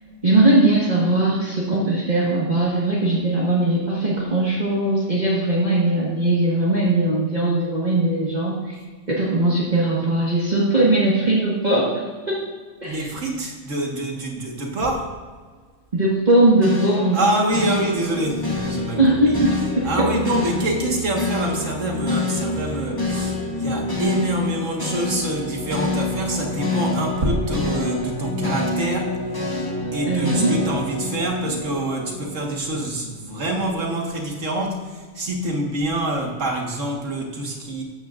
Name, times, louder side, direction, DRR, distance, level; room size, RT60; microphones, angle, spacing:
voice 1, 0.2-8.8 9.1-12.4 12.8-13.1 15.9-17.2 19.0-20.1 30.1-30.5, right 2 dB, 35° right, -6 dB, 1.7 m, -20 dB
voice 2, 12.8-15.1 17.1-19.4 19.8-29.2 29.9-37.8, right 1 dB, 90° right, 1 dB, 1.9 m, -26 dB
sound 1, 16.6-32.9, left 2 dB, 20° left, 1.4 m, -27 dB
13.5 x 9.2 x 2.5 m, 1.5 s
omnidirectional pair, 1.3 m